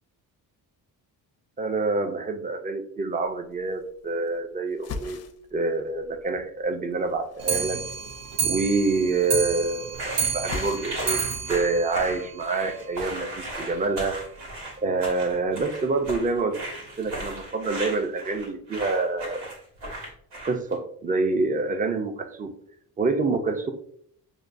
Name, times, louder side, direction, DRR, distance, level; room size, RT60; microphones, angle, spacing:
voice 1, 1.6-5.2 5.5-7.8 8.4-11.2 11.5-14.2 14.8-16.6 17.0-19.5 20.4-22.5 23.0-23.7, right 3 dB, 20° right, 8 dB, 0.4 m, -26 dB
sound 1, 3.2-3.3 3.5-4.3 4.7-6.3 6.6-9.1 9.4-9.9 10.1-11.2 11.5-12.3, left 4 dB, 40° left, 0.4 m, -41 dB
Clock, 7.4-12.9 13.2-13.3 13.6-13.7 14.0-14.1 14.4-14.5 15.2-15.3 16.0-16.1 16.8-16.9, right 6 dB, 65° right, 0.7 m, -30 dB
sound 2, 9.9-20.7, right 1 dB, 90° right, 1.6 m, -36 dB
6.4 x 2.2 x 2.4 m, 0.67 s
cardioid pair, 115°, 39 cm